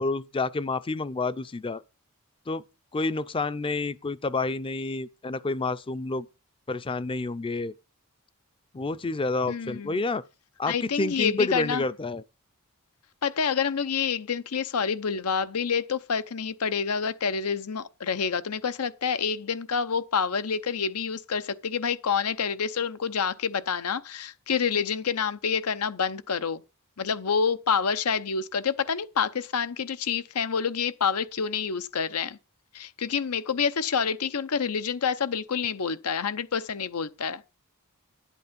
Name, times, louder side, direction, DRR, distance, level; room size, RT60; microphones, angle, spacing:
voice 1, 0.0-1.8 2.5-2.6 2.9-6.3 6.7-7.7 8.7-10.2 10.6-12.2, left 3 dB, 25° left, 0.5 m, -29 dB
voice 2, 9.5-10.0 10.7-11.8 13.2-26.6 27.0-32.4 32.7-37.4, left 6 dB, 80° left, 0.7 m, -28 dB
10.5 x 8.4 x 5.2 m
head